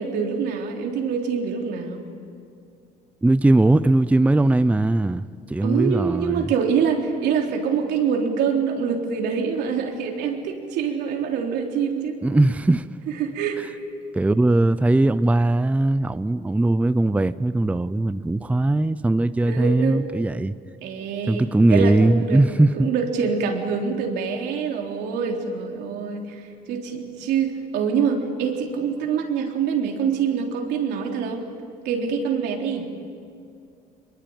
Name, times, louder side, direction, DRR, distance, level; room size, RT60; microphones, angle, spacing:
voice 1, 0.0-2.0 5.6-12.2 13.2-13.6 19.4-20.0 20.8-22.4 22.7-31.5 31.8-32.9, right 6 dB, 85° right, 3.8 m, -25 dB
voice 2, 3.2-6.5 12.2-12.9 14.1-20.5 21.3-22.9, right 2 dB, 10° right, 0.5 m, -19 dB
25.0 x 22.0 x 8.9 m
cardioid pair, 110°, 17 cm